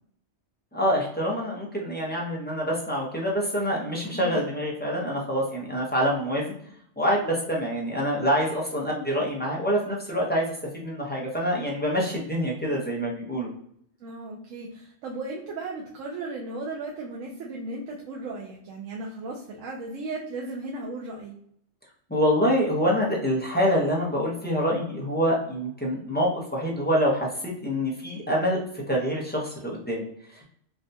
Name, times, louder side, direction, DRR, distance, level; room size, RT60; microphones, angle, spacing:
voice 1, 0.7-6.5 7.0-13.5 22.1-28.6 28.9-30.1, equal, 15° left, -3 dB, 0.4 m, -26 dB
voice 2, 14.0-21.3, right 2 dB, 85° right, -2 dB, 1.0 m, -36 dB
3.5 x 2.2 x 2.6 m, 0.66 s
omnidirectional pair, 1.3 m